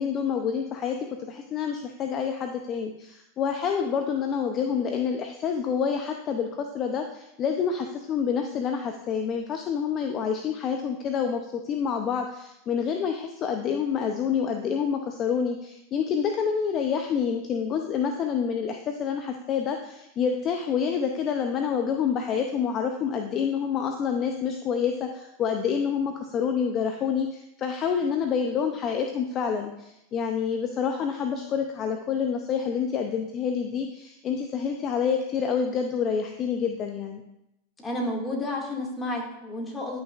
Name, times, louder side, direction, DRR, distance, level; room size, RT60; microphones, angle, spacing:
voice 1, 0.0-37.2, left 7 dB, 35° left, 5 dB, 0.7 m, -28 dB
voice 2, 37.8-40.0, left 1 dB, 15° left, -1 dB, 2.2 m, -31 dB
10.5 x 6.0 x 2.5 m, 0.86 s
hypercardioid pair, 100°, 0 cm